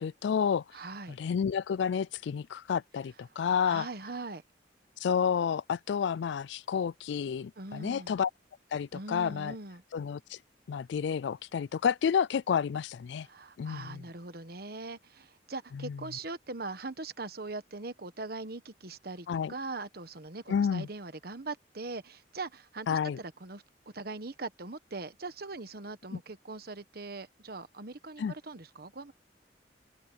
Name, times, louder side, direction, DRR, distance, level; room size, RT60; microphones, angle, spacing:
voice 1, 0.0-0.6 1.1-3.9 5.0-8.3 8.7-9.6 9.9-10.4 10.7-13.3 13.6-14.1 15.7-16.1 19.3-19.5 20.5-20.9 22.9-23.2 26.1-26.2 28.2-28.3, left 7 dB, 70° left, 0.3 m, -30 dB
voice 2, 0.7-1.1 3.7-4.4 7.6-8.1 8.9-9.8 13.3-23.6 23.9-29.1, right 3 dB, 55° right, 1.2 m, -41 dB
open air
head